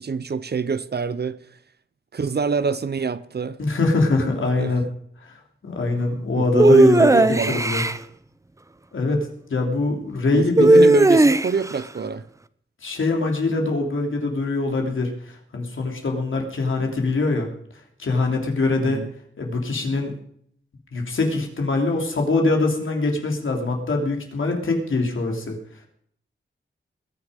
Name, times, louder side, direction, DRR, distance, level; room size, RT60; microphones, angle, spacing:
voice 1, 0.0-1.4 2.1-3.6 4.6-4.7 6.4-7.6 10.3-12.2 18.8-19.1, right 5 dB, 55° right, 0.8 m, -25 dB
voice 2, 3.6-4.8 5.6-7.8 8.9-10.9 12.8-17.5 18.0-19.0 19.4-20.1 20.9-25.6, left 3 dB, 80° left, 3.2 m, -23 dB
sound 1, 6.6-8.0 10.6-11.7, right 2 dB, 15° right, 0.6 m, -15 dB
21.0 x 9.7 x 5.2 m
wide cardioid pair, 110°, 20 cm